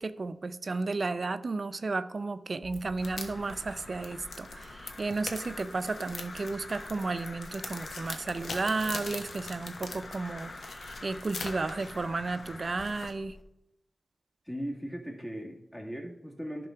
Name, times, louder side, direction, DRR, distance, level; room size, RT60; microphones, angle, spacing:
voice 1, 0.0-13.4, right 3 dB, 60° right, 12 dB, 0.5 m, -33 dB
sound 1, 2.6-13.4, left 3 dB, 80° left, 1.0 m, -43 dB
Crow, 3.0-13.1, left 2 dB, 55° left, 1.0 m, -46 dB
voice 2, 14.5-16.7, equal, 15° left, 0 dB, 1.9 m, -38 dB
10.5 x 3.8 x 5.7 m, 0.87 s
cardioid pair, 45°, 0 cm